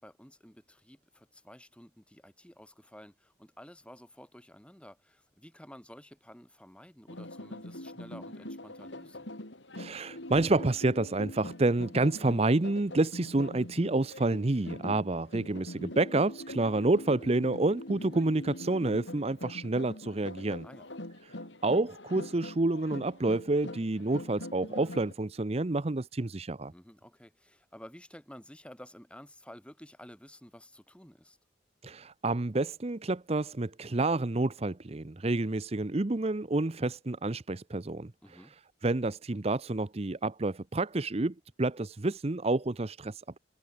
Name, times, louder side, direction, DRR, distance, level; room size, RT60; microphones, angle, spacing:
voice 1, 0.0-9.3 20.6-20.9 26.7-31.4 38.2-38.5, equal, 5° left, 5.5 m, -52 dB
sound 1, 7.1-25.1, left 1 dB, 90° left, 5.8 m, -43 dB
voice 2, 9.7-20.7 21.2-21.4 21.6-26.7 31.8-38.1 38.8-43.2, right 2 dB, 35° right, 0.7 m, -29 dB
head